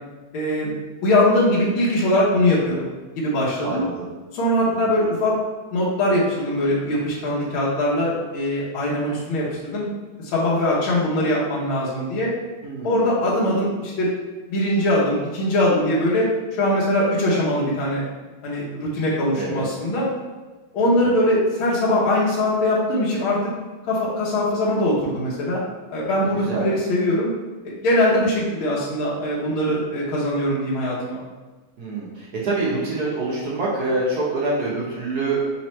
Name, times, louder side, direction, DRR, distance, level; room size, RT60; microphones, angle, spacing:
voice 1, 0.3-0.7 1.0-2.9 3.2-3.8 4.3-5.3 5.7-9.9 10.2-12.3 12.8-14.1 14.5-18.0 18.4-20.1 20.7-23.4 23.8-25.6 25.9-27.3 27.8-31.2, left 1 dB, 80° left, -7 dB, 1.7 m, -21 dB
voice 2, 3.6-4.1 4.7-4.9 12.6-13.1 19.3-19.7 20.9-21.1 26.3-26.7 31.8-35.4, right 2 dB, 60° right, -6 dB, 1.3 m, -26 dB
4.1 x 3.1 x 4.2 m, 1.2 s
omnidirectional pair, 2.2 m